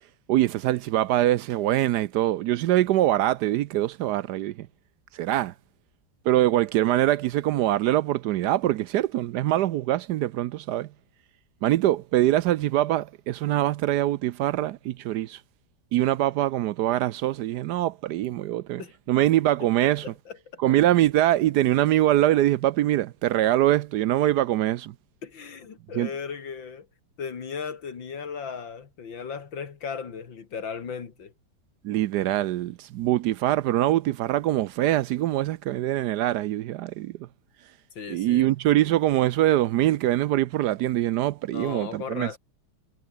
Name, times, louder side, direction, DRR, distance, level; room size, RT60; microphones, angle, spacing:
voice 1, 0.3-4.7 5.1-5.5 6.2-10.9 11.6-15.4 15.9-18.8 19.1-20.1 20.6-24.9 25.9-26.1 31.8-37.3 38.1-42.4, right 14 dB, 70° right, 1.1 m, -23 dB
voice 2, 19.8-20.6 25.2-26.9 27.2-31.3 37.9-38.9 41.5-42.4, left 6 dB, 85° left, 3.1 m, -36 dB
omnidirectional pair, 2.0 m